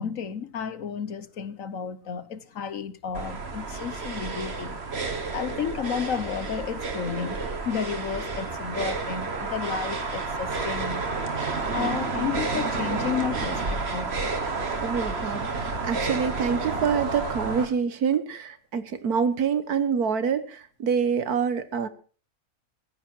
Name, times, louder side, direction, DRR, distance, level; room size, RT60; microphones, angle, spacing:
voice 1, 0.0-4.8 5.3-11.0 11.7-14.1, left 7 dB, 60° left, 1.4 m, -32 dB
sound 1, 3.1-17.7, right 3 dB, 45° right, 1.9 m, -30 dB
voice 2, 14.8-21.9, right 6 dB, 80° right, 1.8 m, -26 dB
15.0 x 14.5 x 4.5 m
omnidirectional pair, 1.6 m